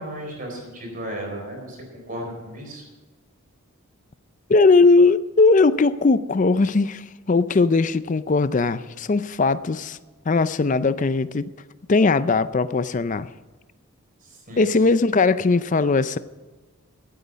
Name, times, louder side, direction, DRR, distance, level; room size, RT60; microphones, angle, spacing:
voice 1, 0.0-1.8 2.1-2.8 14.2-14.7, right 1 dB, 40° right, 0 dB, 4.2 m, -34 dB
voice 2, 4.5-10.0 10.3-11.5 11.9-13.3 14.6-16.2, left 3 dB, 35° left, 15 dB, 0.4 m, -19 dB
15.0 x 9.6 x 5.1 m, 1.3 s
head